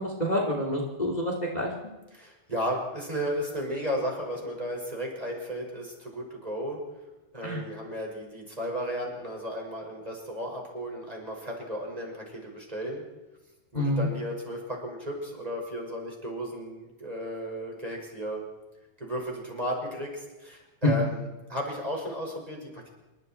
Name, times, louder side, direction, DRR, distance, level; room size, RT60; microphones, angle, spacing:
voice 1, 0.0-1.7 7.4-7.6 13.7-14.1, left 1 dB, 25° left, 0 dB, 0.9 m, -28 dB
voice 2, 2.1-6.8 7.3-13.0 13.7-18.4 19.0-22.9, equal, 5° right, 0 dB, 5.3 m, -34 dB
27.5 x 24.0 x 4.6 m, 1.1 s
omnidirectional pair, 5.9 m